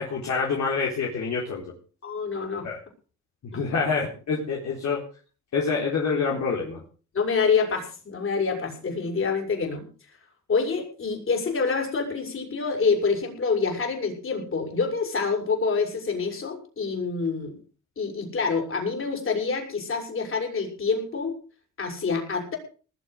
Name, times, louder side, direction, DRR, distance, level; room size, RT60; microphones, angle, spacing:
voice 1, 0.0-1.6 2.6-2.8 3.4-5.0 5.5-6.8, left 5 dB, 65° left, -2 dB, 4.1 m, -26 dB
voice 2, 2.0-2.7 3.5-3.6 7.1-9.9 10.5-17.5 18.0-21.3 21.8-22.6, left 5 dB, 45° left, 2 dB, 6.7 m, -26 dB
20.0 x 7.9 x 6.5 m, 0.39 s
cardioid pair, 90°, 30 cm